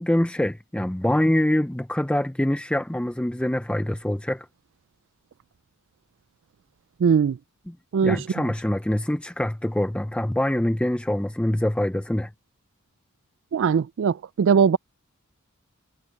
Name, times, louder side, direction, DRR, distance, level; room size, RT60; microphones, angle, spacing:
voice 1, 0.0-4.5 7.7-7.8 8.0-12.3, left 1 dB, 5° left, 0.5 m, -24 dB
voice 2, 7.0-7.4 7.9-8.2 13.5-14.8, right 6 dB, 60° right, 0.3 m, -20 dB
head